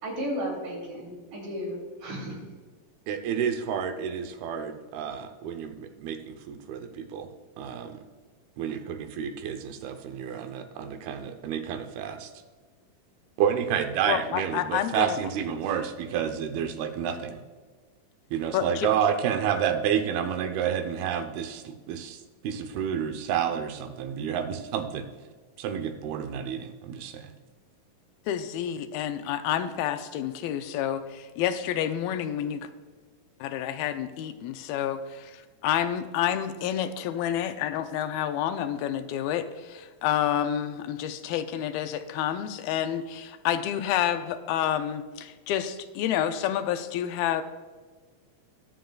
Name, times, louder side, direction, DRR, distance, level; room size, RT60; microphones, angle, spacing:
voice 1, 0.0-2.4, equal, 60° right, -1 dB, 4.2 m, -34 dB
voice 2, 3.1-7.3 7.6-8.0 8.6-12.3 13.4-17.4 18.3-22.2 22.4-25.0 25.6-27.3, right 8 dB, 85° right, 6 dB, 2.7 m, -30 dB
voice 3, 14.0-15.2 18.5-18.9 28.3-32.7 33.4-47.4, left 10 dB, 85° left, 10 dB, 2.4 m, -29 dB
21.5 x 7.8 x 2.3 m, 1.4 s
omnidirectional pair, 4.3 m